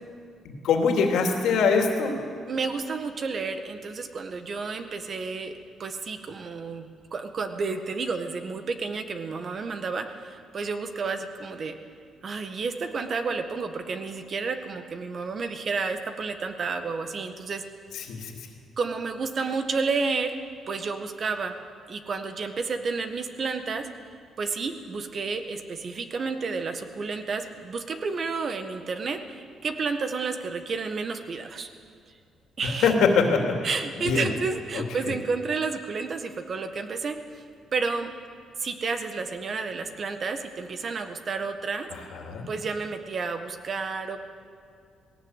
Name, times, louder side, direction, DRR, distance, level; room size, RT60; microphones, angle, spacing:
voice 1, 0.6-2.2 17.9-18.3 32.8-33.6 34.0-34.3 34.7-34.8 42.2-42.5, left 5 dB, 80° left, 3 dB, 2.8 m, -22 dB
voice 2, 2.5-5.5 5.8-11.7 12.2-17.6 18.8-20.3 20.7-21.5 21.9-23.9 24.4-31.7 32.6-32.9 33.6-37.4 37.7-38.1 38.6-41.9 42.5-44.2, right 4 dB, 50° right, 7 dB, 1.6 m, -31 dB
18.0 x 17.5 x 8.3 m, 2.2 s
cardioid pair, 90°, 0 cm